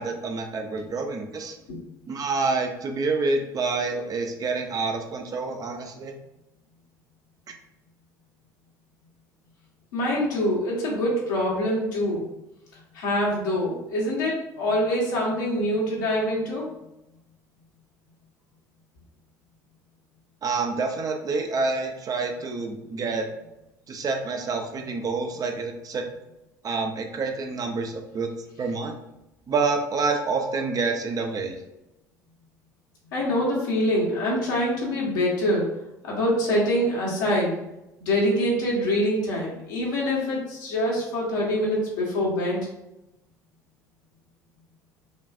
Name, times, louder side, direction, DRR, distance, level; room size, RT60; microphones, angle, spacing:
voice 1, 0.0-1.6 2.1-6.1 7.5-7.6 20.4-23.3 23.9-26.0 26.6-28.3 28.6-29.0 29.5-31.6, right 4 dB, 40° right, 4 dB, 0.7 m, -27 dB
voice 2, 9.9-12.2 12.9-16.7 33.1-35.7 36.0-37.6 38.0-42.7, left 1 dB, 75° left, -4 dB, 1.4 m, -25 dB
5.2 x 2.5 x 2.5 m, 0.91 s
hypercardioid pair, 65°, 10 cm